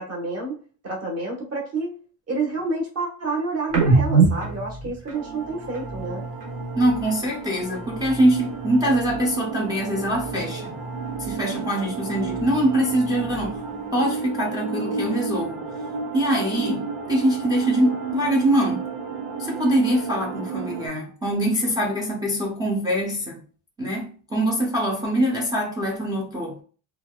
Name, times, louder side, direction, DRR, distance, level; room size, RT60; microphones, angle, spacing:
voice 1, 0.0-1.9 2.3-6.2, right 3 dB, 30° right, 1.1 m, -29 dB
sound 1, 3.7-7.3 7.6-9.4 9.7-11.6 11.9-13.8, right 4 dB, 55° right, 1.2 m, -27 dB
sound 2, 5.1-20.9, right 5 dB, 85° right, 1.2 m, -33 dB
voice 2, 6.8-10.8 11.2-13.6 13.9-15.6 16.1-18.9 19.4-23.4 23.8-26.6, right 1 dB, 10° right, 0.4 m, -23 dB
4.3 x 2.4 x 2.2 m
cardioid pair, 150°, 49 cm